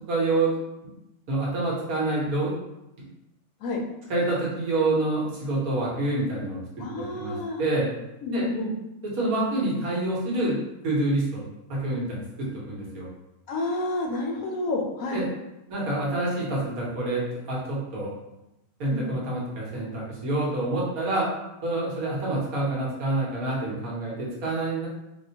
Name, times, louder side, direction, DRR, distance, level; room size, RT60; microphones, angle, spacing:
voice 1, 0.1-0.5 1.3-2.5 4.1-7.9 8.3-8.4 9.2-10.6 10.8-11.4 11.7-13.1 15.1-15.2 15.7-18.1 18.8-21.3 21.6-24.9, right 2 dB, 70° right, -5 dB, 1.4 m, -27 dB
voice 2, 6.8-7.7 8.2-8.7 13.5-15.2 18.9-19.2, left 2 dB, 70° left, 0 dB, 0.9 m, -29 dB
4.1 x 2.2 x 2.8 m, 0.91 s
omnidirectional pair, 1.6 m